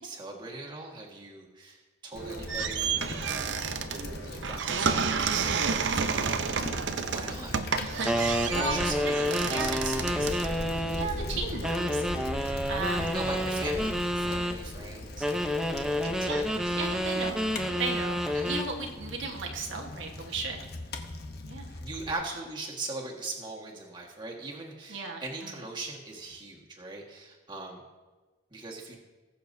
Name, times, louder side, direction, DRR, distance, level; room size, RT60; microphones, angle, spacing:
voice 1, 0.0-3.5 4.2-6.3 7.1-7.6 8.5-10.6 13.1-15.5 15.9-16.7 18.3-18.5 21.8-27.8 28.5-29.0, right 3 dB, 25° right, -2 dB, 1.6 m, -40 dB
sound 1, 2.1-11.2, right 6 dB, 70° right, 0.6 m, -31 dB
Bicycle, 2.2-22.1, left 1 dB, 55° left, 0.9 m, -39 dB
voice 2, 7.8-8.8 9.5-9.8 10.9-12.3 12.7-13.2 16.0-16.5 16.7-17.4 17.8-20.6 21.4-21.8 24.9-25.6, right 3 dB, 90° right, 1 dB, 1.3 m, -35 dB
sound 2, 8.0-11.1 11.6-14.6 15.2-18.7, equal, 5° right, 0.6 m, -29 dB
20.0 x 6.9 x 2.7 m, 1.3 s
head